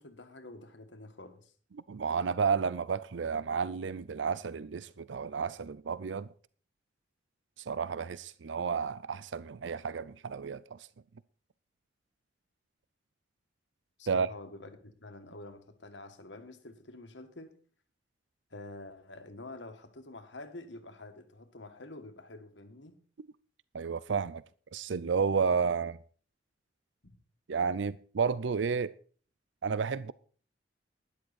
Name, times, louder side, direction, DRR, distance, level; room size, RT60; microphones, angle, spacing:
voice 1, 0.0-1.5 14.0-17.5 18.5-23.0 27.0-27.1, left 2 dB, 80° left, 2.0 m, -48 dB
voice 2, 1.9-6.3 7.7-10.8 14.1-14.3 23.2-23.3 23.7-24.4 24.7-26.0 27.5-28.9 29.6-30.1, right 5 dB, 90° right, 0.5 m, -31 dB
12.5 x 11.0 x 4.4 m
head